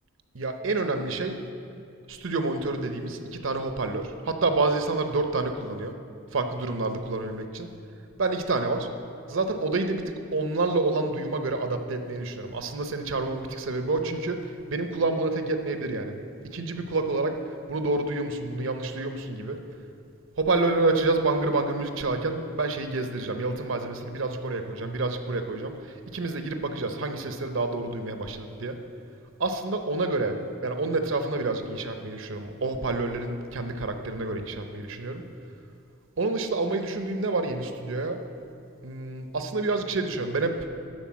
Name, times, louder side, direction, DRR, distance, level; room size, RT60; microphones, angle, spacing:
voice 1, 0.3-1.4 2.1-5.9 6.3-7.7 8.2-8.9 9.3-10.0 10.3-14.4 14.7-16.2 16.4-17.3 17.7-19.6 20.4-25.7 26.1-28.8 29.4-30.4 30.6-35.2 36.2-38.2 38.8-40.5, right 3 dB, 65° right, 7 dB, 0.7 m, -28 dB
11.5 x 4.5 x 7.3 m, 2.6 s
head